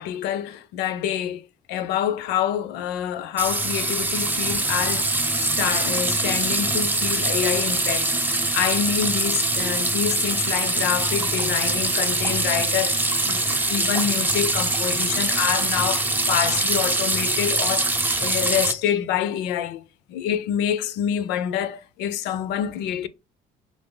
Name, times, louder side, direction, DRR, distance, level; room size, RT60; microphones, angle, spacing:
voice 1, 0.0-1.4 1.7-8.1 8.5-19.8 20.1-23.1, left 10 dB, 90° left, 0.4 m, -27 dB
sound 1, 3.4-18.7, right 2 dB, 10° right, 0.6 m, -23 dB
3.0 x 2.5 x 3.7 m
cardioid pair, 110°, 17 cm